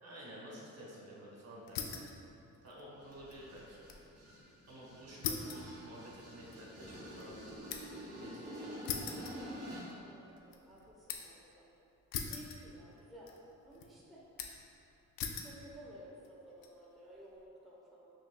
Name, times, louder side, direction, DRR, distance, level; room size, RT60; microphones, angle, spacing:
voice 1, 0.0-2.0 2.6-3.9 4.7-7.4 8.0-9.2, equal, 50° right, -5 dB, 1.2 m, -52 dB
sound 1, 1.7-2.2 2.5-4.1 4.4-4.5 5.2-8.1 8.9-10.0 10.4-11.4 12.1-13.0 13.3-13.9 14.4-14.7 15.2-15.6 16.2-16.7, left 6 dB, 80° left, 0.5 m, -42 dB
sound 2, 3.0-10.0, equal, 25° right, 1.3 m, -48 dB
voice 2, 10.0-11.7 12.3-13.3 13.6-14.2 15.4-18.1, equal, ahead, -6 dB, 0.7 m, -55 dB
5.6 x 3.2 x 2.2 m, 2.8 s
cardioid pair, 70°, 34 cm